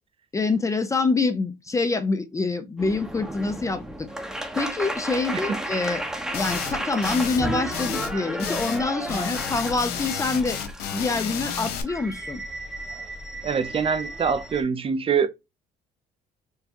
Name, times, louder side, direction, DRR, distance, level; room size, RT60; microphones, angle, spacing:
voice 1, 0.3-4.1 4.5-6.0 6.3-10.6 10.9-12.4, left 3 dB, 20° left, 0.5 m, -26 dB
sound 1, 2.8-14.6, right 1 dB, 5° right, 0.9 m, -33 dB
sound 2, 6.3-6.8 7.0-7.4 7.7-8.8 9.1-11.8, left 8 dB, 75° left, 0.8 m, -31 dB
voice 2, 13.4-15.3, right 6 dB, 35° right, 0.5 m, -24 dB
4.6 x 2.2 x 2.7 m
cardioid pair, 110°, 17 cm